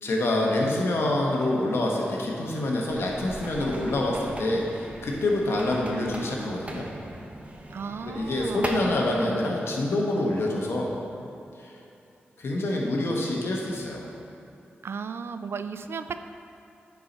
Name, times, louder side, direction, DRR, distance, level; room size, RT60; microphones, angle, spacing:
voice 1, 0.0-6.9 8.0-10.9 11.6-11.7 12.4-14.0, left 1 dB, 70° left, -2 dB, 1.2 m, -26 dB
sound 1, 2.9-9.0, right 1 dB, 30° right, 1.0 m, -39 dB
voice 2, 7.7-8.8 14.8-16.2, right 5 dB, 70° right, 10 dB, 0.3 m, -35 dB
9.4 x 4.7 x 4.1 m, 2.7 s
cardioid pair, 50°, 4 cm